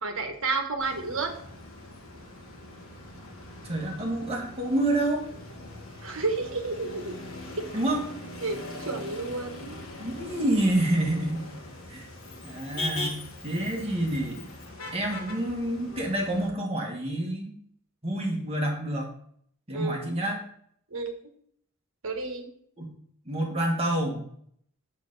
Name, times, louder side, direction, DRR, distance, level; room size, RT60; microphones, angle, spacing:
voice 1, 0.0-1.3 6.0-7.1 7.6-7.7 8.4-9.8 19.7-20.0 20.9-21.1 22.0-22.5, right 3 dB, 70° right, 4 dB, 1.2 m, -31 dB
Motor vehicle (road), 0.8-16.5, left 2 dB, 75° left, 1.6 m, -41 dB
voice 2, 3.6-5.3 7.7-8.0 10.0-11.5 11.9-12.1 12.4-14.4 14.9-17.6 18.0-19.1 19.7-20.4 22.8-22.9 23.3-24.2, right 1 dB, 25° right, 0 dB, 1.5 m, -28 dB
6.7 x 6.4 x 4.0 m, 0.65 s
head